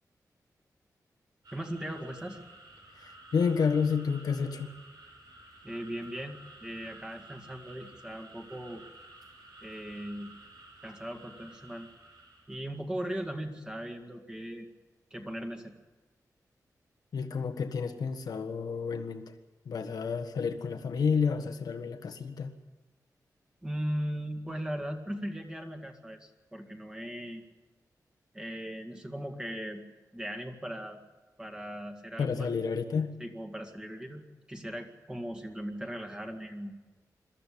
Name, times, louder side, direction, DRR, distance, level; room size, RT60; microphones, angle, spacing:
sound 1, 1.4-12.6, right 2 dB, 85° right, 6.4 m, -52 dB
voice 1, 1.5-2.4 5.6-8.8 9.6-10.3 10.8-11.9 12.5-14.7 15.1-15.7 23.6-27.4 28.3-29.8 30.1-31.0 31.4-32.5 33.2-34.2 34.5-36.7, equal, 10° right, 3 dB, 1.9 m, -38 dB
voice 2, 2.9-4.7 17.1-19.3 19.6-22.5 32.2-33.2, left 5 dB, 75° left, 7 dB, 1.4 m, -30 dB
23.0 x 14.0 x 8.6 m, 1.3 s
wide cardioid pair, 155°, 7 cm